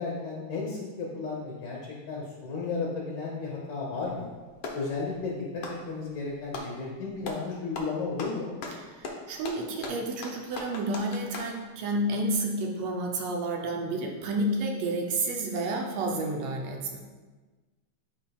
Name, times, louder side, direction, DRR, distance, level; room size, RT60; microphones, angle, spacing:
voice 1, 0.0-4.3 4.7-8.5, left 4 dB, 65° left, -3 dB, 1.1 m, -34 dB
Clapping, 4.0-4.9 5.5-6.8 7.2-7.5 7.7-11.6, left 3 dB, 85° left, 1.1 m, -39 dB
voice 2, 8.8-17.0, right 2 dB, 75° right, 0 dB, 1.7 m, -30 dB
11.5 x 4.2 x 2.3 m, 1.3 s
omnidirectional pair, 3.4 m